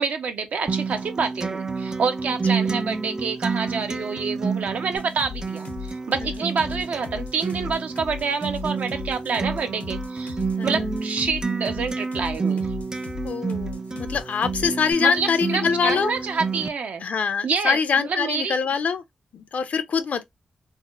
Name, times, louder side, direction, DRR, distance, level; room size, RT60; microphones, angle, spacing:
voice 1, 0.0-12.7 15.0-17.0 17.4-18.5, right 5 dB, 75° right, 0.7 m, -27 dB
Acoustic guitar, 0.7-16.7, right 4 dB, 25° right, 0.3 m, -29 dB
Troy's Hard Trance kick and hi hat, 5.0-14.9, left 7 dB, 85° left, 0.8 m, -37 dB
voice 2, 13.2-16.1 17.0-19.0 19.3-20.2, left 6 dB, 70° left, 0.5 m, -24 dB
4.1 x 2.0 x 2.3 m
wide cardioid pair, 105°, 3 cm